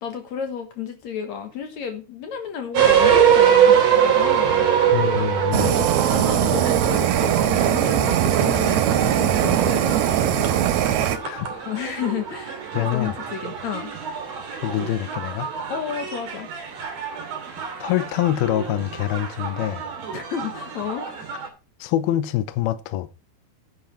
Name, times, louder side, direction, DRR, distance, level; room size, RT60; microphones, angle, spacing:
voice 1, 0.0-4.7 5.6-10.5 10.8-11.1 11.7-13.9 15.7-16.5 20.1-21.1, left 8 dB, 60° left, 2.1 m, -32 dB
sound 1, 2.7-21.5, right 8 dB, 45° right, 3.6 m, -24 dB
voice 2, 4.9-5.8 11.2-11.5 12.7-13.1 14.6-15.5 17.8-19.8 21.8-23.1, left 13 dB, 80° left, 2.7 m, -25 dB
Fire, 5.5-11.2, right 10 dB, 80° right, 3.0 m, -20 dB
10.0 x 9.4 x 4.3 m
omnidirectional pair, 4.5 m